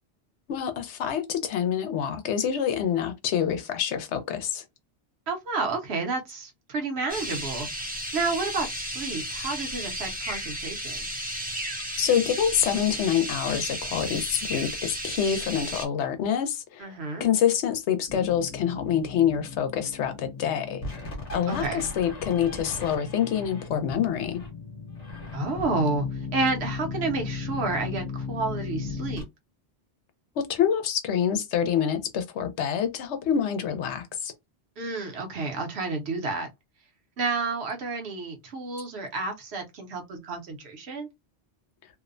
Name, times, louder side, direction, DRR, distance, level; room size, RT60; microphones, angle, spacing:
voice 1, 0.5-4.6 12.0-16.9 17.2-20.8 21.3-24.4 30.4-34.3, left 8 dB, 85° left, 0.9 m, -26 dB
voice 2, 5.3-7.7 8.1-11.1 16.8-17.2 21.5-21.8 25.3-26.1 26.3-29.3 34.8-36.5 37.2-41.1, right 3 dB, 70° right, 1.0 m, -30 dB
sound 1, 7.1-15.9, equal, 15° right, 0.4 m, -34 dB
sound 2, 18.1-29.2, left 5 dB, 40° left, 0.9 m, -36 dB
2.6 x 2.0 x 2.4 m
omnidirectional pair, 1.2 m